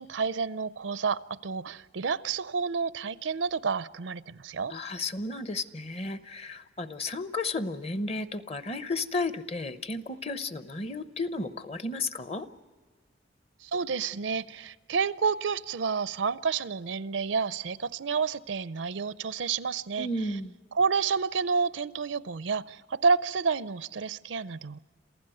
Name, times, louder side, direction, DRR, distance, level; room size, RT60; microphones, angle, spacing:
voice 1, 0.0-4.7 13.6-20.1 20.7-24.8, right 5 dB, 75° right, 16 dB, 0.5 m, -29 dB
voice 2, 4.7-12.5 20.0-20.6, left 2 dB, 35° left, 12 dB, 0.8 m, -33 dB
27.5 x 15.5 x 7.8 m, 1.5 s
head